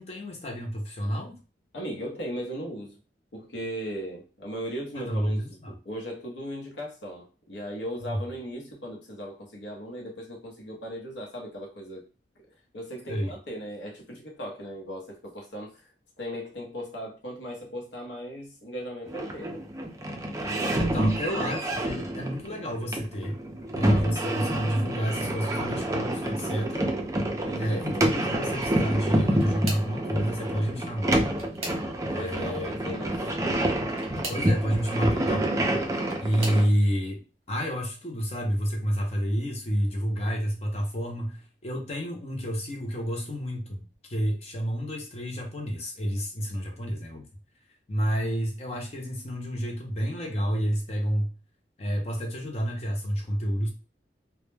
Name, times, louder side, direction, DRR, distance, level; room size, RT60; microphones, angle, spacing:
voice 1, 0.0-1.4 4.9-5.7 8.0-8.2 13.1-13.3 20.7-23.4 23.7-26.9 27.5-31.2 32.1-32.7 34.3-35.5 36.2-37.2 37.5-47.3 47.9-51.3 51.8-53.7, equal, 35° left, 2 dB, 0.6 m, -29 dB
voice 2, 1.7-3.0 3.3-12.1 12.7-15.8 16.2-19.6 20.4-20.9 23.9-24.1 27.1-27.9 32.2-33.7, equal, 80° left, 0 dB, 0.7 m, -38 dB
sound 1, 19.1-36.7, right 1 dB, 20° right, 0.3 m, -28 dB
sound 2, 29.0-30.0 31.0-32.2 33.8-34.5 35.6-36.7 37.4-37.8 38.2-38.3 39.7-39.8, right 2 dB, 35° right, 0.8 m, -40 dB
2.1 x 2.1 x 3.1 m, 0.34 s
head